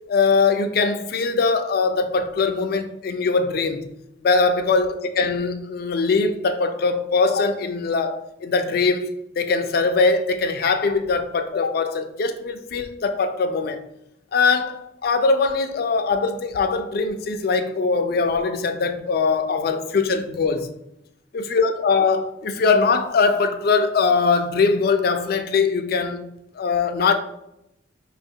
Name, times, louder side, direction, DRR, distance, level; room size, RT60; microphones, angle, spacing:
voice 1, 0.1-3.9 4.2-9.1 9.4-13.8 14.3-20.7 21.3-27.1, left 4 dB, 55° left, 0.4 m, -21 dB
5.7 x 2.4 x 2.7 m
head